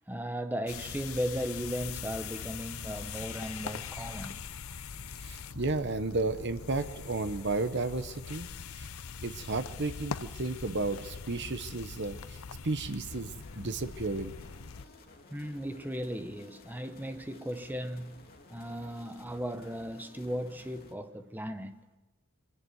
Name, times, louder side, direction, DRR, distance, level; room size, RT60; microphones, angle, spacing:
voice 1, 0.1-4.5 15.3-18.2 18.5-21.8, equal, 10° right, 1.0 m, -36 dB
sound 1, 0.7-14.9, left 6 dB, 70° left, 0.7 m, -42 dB
voice 2, 5.2-8.5 8.8-8.9 9.2-12.2 12.6-14.3, right 3 dB, 55° right, 1.0 m, -33 dB
sound 2, 13.1-20.9, left 2 dB, 45° left, 2.5 m, -55 dB
25.0 x 11.0 x 9.5 m
head